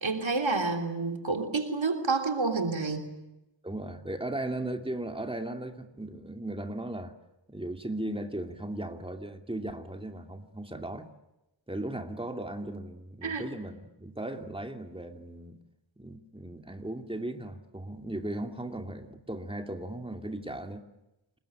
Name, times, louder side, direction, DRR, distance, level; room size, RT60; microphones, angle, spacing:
voice 1, 0.0-3.1 13.2-13.4, right 3 dB, 80° right, 4 dB, 3.3 m, -29 dB
voice 2, 3.6-7.1 7.5-11.1 11.7-15.6 16.0-20.8, right 1 dB, 10° right, 4 dB, 2.7 m, -37 dB
28.5 x 20.5 x 8.8 m, 0.95 s
wide cardioid pair, 60°, 45 cm